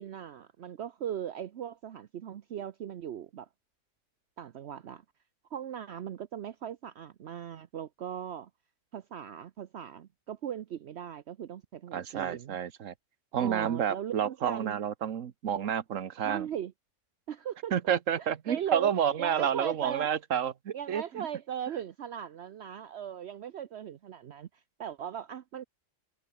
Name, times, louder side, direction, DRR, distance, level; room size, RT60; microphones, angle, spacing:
voice 1, 0.0-3.5 4.4-5.0 5.5-8.5 8.9-12.6 13.4-14.8 16.2-16.7 17.3-17.7 18.2-20.1 20.7-25.6, right 9 dB, 60° right, 1.0 m, -39 dB
voice 2, 11.9-12.9 13.3-16.5 17.7-21.3, right 8 dB, 90° right, 1.4 m, -30 dB
omnidirectional pair, 1.3 m